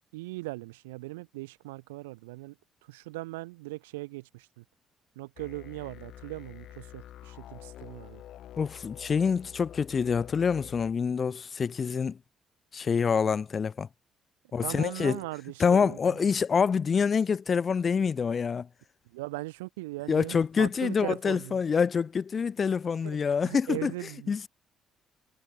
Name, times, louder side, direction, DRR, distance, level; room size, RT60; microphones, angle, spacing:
voice 1, 0.1-2.5 2.9-4.6 5.2-8.2 14.6-16.3 19.1-21.6 23.0-23.2 23.4-24.5, right 22 dB, 80° right, 0.5 m, -39 dB
sound 1, 5.4-10.9, left 12 dB, 60° left, 1.6 m, -47 dB
voice 2, 8.6-12.2 12.7-13.9 14.5-15.2 15.6-18.7 20.1-23.9 24.3-24.5, left 6 dB, 45° left, 0.7 m, -26 dB
figure-of-eight pair, 45°, 0 cm